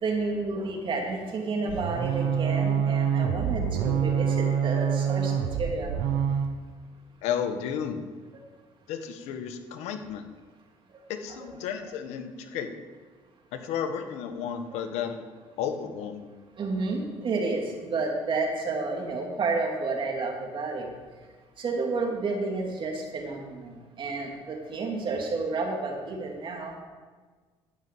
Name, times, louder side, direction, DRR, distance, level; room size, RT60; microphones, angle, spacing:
voice 1, 0.0-5.3 5.6-6.2 11.3-11.4 16.6-20.9 21.6-26.8, right 3 dB, 50° right, 1 dB, 2.7 m, -30 dB
sound 1, 1.7-6.6, right 7 dB, 90° right, 0.9 m, -26 dB
voice 2, 7.2-8.1 8.9-10.2 11.1-12.7 13.5-15.3 15.6-16.2, left 8 dB, 85° left, 7 dB, 1.2 m, -32 dB
12.5 x 5.6 x 8.4 m, 1.4 s
supercardioid pair, 85°, 11 cm